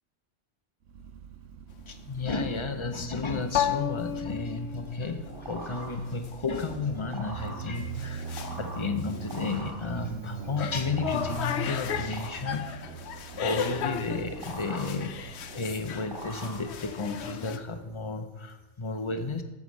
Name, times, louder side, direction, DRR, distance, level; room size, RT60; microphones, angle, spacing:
Motorcycle, 0.9-18.1, right 6 dB, 90° right, 1.0 m, -43 dB
sound 1, 1.7-17.6, left 8 dB, 70° left, 0.9 m, -36 dB
voice 1, 1.9-12.8 13.3-19.4, left 3 dB, 30° left, 7 dB, 0.6 m, -33 dB
sound 2, 4.8-17.2, right 2 dB, 45° right, 4.1 m, -44 dB
9.3 x 4.9 x 6.2 m, 1.1 s
omnidirectional pair, 1.2 m